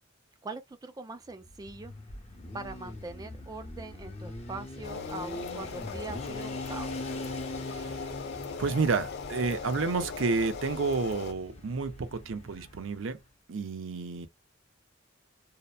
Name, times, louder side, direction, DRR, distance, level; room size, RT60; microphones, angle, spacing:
voice 1, 0.4-1.9 2.5-7.1, right 3 dB, 20° right, 0.3 m, -42 dB
Motorcycle, 1.4-13.1, left 1 dB, 30° left, 0.7 m, -42 dB
sound 1, 4.8-11.3, left 5 dB, 55° left, 0.4 m, -39 dB
voice 2, 7.7-8.0 8.6-13.2 13.5-14.3, right 4 dB, 75° right, 0.5 m, -30 dB
2.8 x 2.1 x 2.2 m
head